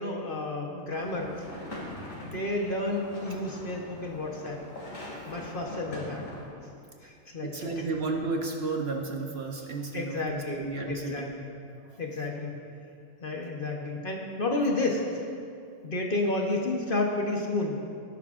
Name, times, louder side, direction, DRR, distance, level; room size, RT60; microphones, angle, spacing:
voice 1, 0.0-1.5 2.2-4.6 5.2-6.2 7.0-7.7 9.9-11.5 12.0-12.6 13.2-15.3 15.8-17.8, left 2 dB, 40° left, 0 dB, 1.2 m, -31 dB
sound 1, 0.9-6.5, left 1 dB, 70° left, 2.9 m, -42 dB
voice 2, 7.4-11.3, right 3 dB, 50° right, 1 dB, 1.0 m, -32 dB
17.5 x 10.5 x 2.5 m, 2.4 s
omnidirectional pair, 1.4 m